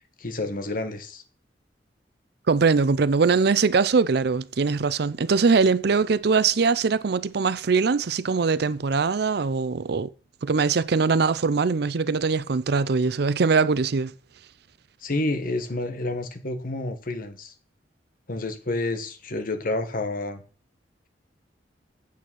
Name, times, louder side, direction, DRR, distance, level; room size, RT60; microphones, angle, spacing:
voice 1, 0.2-1.2 15.0-17.5 18.3-20.4, left 2 dB, 55° left, 1.4 m, -29 dB
voice 2, 2.5-10.1 10.4-14.1, right 4 dB, 65° right, 0.5 m, -22 dB
8.6 x 8.4 x 6.2 m
head